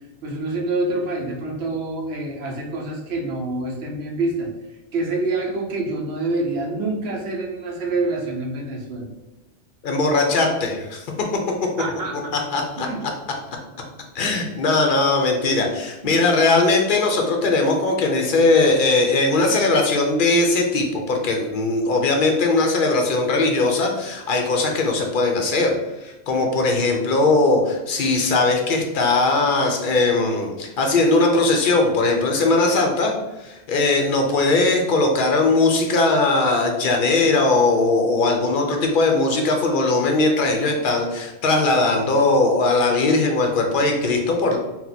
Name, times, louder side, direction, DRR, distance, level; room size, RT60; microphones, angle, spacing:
voice 1, 0.2-4.5 4.9-9.1 11.8-12.3 12.8-13.0 16.0-16.1, right 2 dB, 75° right, 0 dB, 0.9 m, -26 dB
voice 2, 9.8-11.1 12.5-13.1 14.1-33.1 33.4-44.6, left 3 dB, 55° left, 2 dB, 0.7 m, -19 dB
2.8 x 2.1 x 4.0 m, 1.1 s
omnidirectional pair, 1.1 m